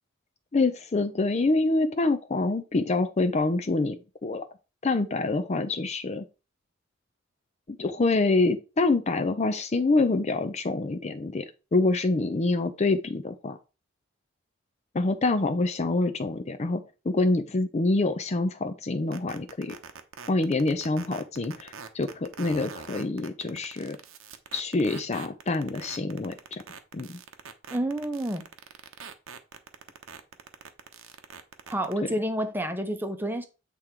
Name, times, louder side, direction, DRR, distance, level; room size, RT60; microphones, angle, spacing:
voice 1, 0.5-4.4 4.8-6.2 7.7-13.6 14.9-19.7 20.3-24.0 24.5-26.6 26.9-27.2, left 2 dB, 30° left, 0.5 m, -26 dB
sound 1, 19.1-31.9, right 6 dB, 75° right, 0.9 m, -43 dB
voice 2, 27.7-28.4 31.7-33.4, right 1 dB, 10° right, 0.8 m, -29 dB
8.3 x 3.6 x 4.5 m
head